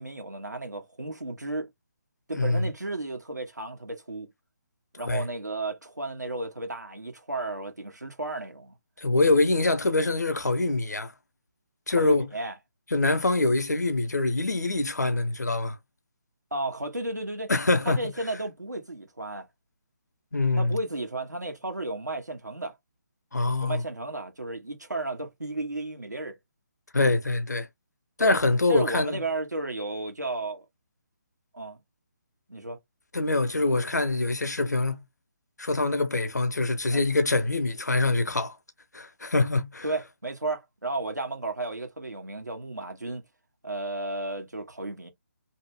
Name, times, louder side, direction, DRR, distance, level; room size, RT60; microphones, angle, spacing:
voice 1, 0.0-1.7 2.3-4.3 4.9-8.8 12.0-12.5 16.5-17.5 17.8-19.5 20.6-22.8 23.6-26.4 28.2-28.4 28.7-30.6 31.5-31.8 32.5-32.8 36.9-37.0 39.8-43.2 43.6-45.1, right 2 dB, 85° right, 1.1 m, -33 dB
voice 2, 2.3-2.7 5.0-5.3 9.0-11.1 11.9-12.3 12.9-15.8 17.5-18.0 20.3-20.8 23.3-23.8 26.9-27.7 28.2-29.2 33.1-35.0 35.6-38.5 38.9-39.8, left 2 dB, 75° left, 0.7 m, -24 dB
2.7 x 2.1 x 3.1 m
figure-of-eight pair, 145°, 9 cm